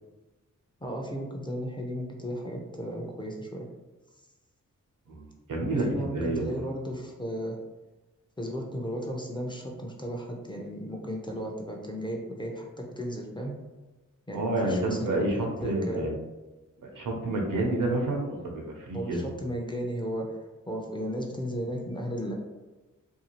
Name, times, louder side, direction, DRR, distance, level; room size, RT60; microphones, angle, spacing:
voice 1, 0.8-3.7 5.7-7.6 8.4-13.5 14.3-16.1 18.9-20.3 20.7-22.3, equal, 15° left, 0 dB, 0.5 m, -35 dB
voice 2, 5.1-6.7 14.3-16.1 16.9-19.2, right 2 dB, 85° right, 1 dB, 0.7 m, -29 dB
2.7 x 2.3 x 2.9 m, 1.1 s
wide cardioid pair, 70°, 32 cm